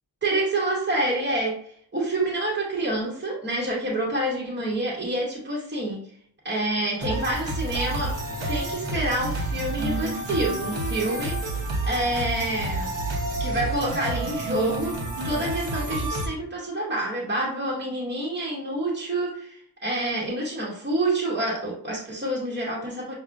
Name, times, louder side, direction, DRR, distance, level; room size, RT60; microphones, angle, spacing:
voice 1, 0.2-6.0 6.4-8.1 8.5-11.3 11.8-12.9 13.4-15.0 15.2-23.1, right 1 dB, 25° right, -5 dB, 0.8 m, -27 dB
sound 1, 7.0-16.3, right 2 dB, 70° right, 1.0 m, -29 dB
5.7 x 2.1 x 2.5 m, 0.63 s
wide cardioid pair, 135°, 44 cm